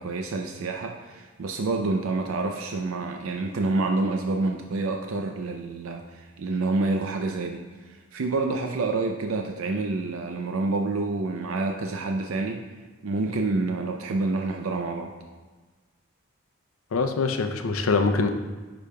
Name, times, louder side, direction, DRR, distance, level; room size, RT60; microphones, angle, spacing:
voice 1, 0.0-7.6 7.9-12.6 13.0-15.1, right 3 dB, 90° right, 3 dB, 0.5 m, -28 dB
voice 2, 16.9-18.3, left 4 dB, 90° left, 6 dB, 0.6 m, -23 dB
9.9 x 5.0 x 2.3 m, 1.3 s
head